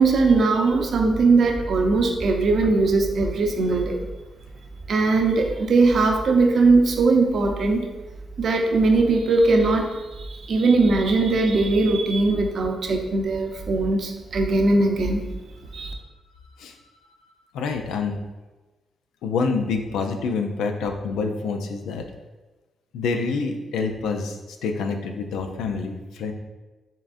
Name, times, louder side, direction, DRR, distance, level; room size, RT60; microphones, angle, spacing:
voice 1, 0.0-4.0 4.9-7.8 8.4-9.9 10.2-15.2 15.7-15.9, right 3 dB, 65° right, 3 dB, 0.7 m, -20 dB
voice 2, 17.5-18.2 19.2-22.0 22.9-24.4 24.6-26.3, left 4 dB, 90° left, 5 dB, 0.5 m, -27 dB
5.5 x 3.7 x 2.6 m, 1.2 s
supercardioid pair, 65°, 0 cm